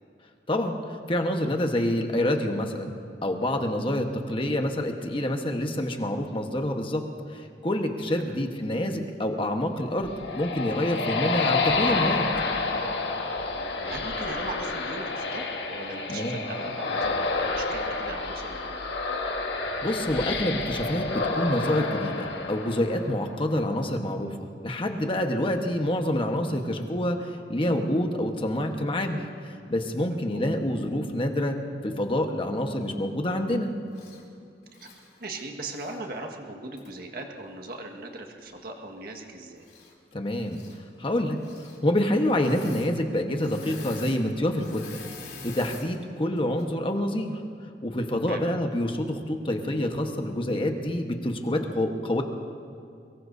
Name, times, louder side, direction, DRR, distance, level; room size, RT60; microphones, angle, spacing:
voice 1, 0.5-2.9 3.2-7.0 7.3-12.3 16.1-16.4 19.8-31.6 31.8-33.7 40.1-40.6 41.0-47.4 47.8-52.2, left 1 dB, 30° left, 4 dB, 1.2 m, -27 dB
sound 1, 9.8-23.4, left 3 dB, 85° left, 1.6 m, -29 dB
voice 2, 13.5-18.8 30.3-30.5 34.8-34.9 35.2-39.6 48.3-48.5, right 2 dB, 60° right, 2 dB, 1.7 m, -39 dB
Engine / Mechanisms, 33.9-34.2 34.7-36.0 36.8-36.9 39.6-40.1 40.4-40.8 41.3-41.8 42.3-42.9 43.2-45.9 46.4-46.6, left 4 dB, 65° left, 3.1 m, -45 dB
23.5 x 22.0 x 2.7 m, 2.5 s
head